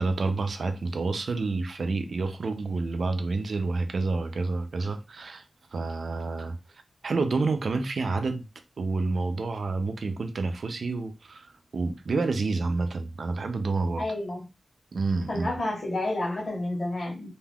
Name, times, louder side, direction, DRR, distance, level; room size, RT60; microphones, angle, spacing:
voice 1, 0.0-5.4 5.7-6.6 7.0-8.5 8.8-14.1 14.9-15.5, right 3 dB, 70° right, 0.5 m, -29 dB
voice 2, 14.0-14.4 15.3-17.3, left 2 dB, 50° left, 1.2 m, -30 dB
2.6 x 2.3 x 3.4 m
wide cardioid pair, 110°, 0 cm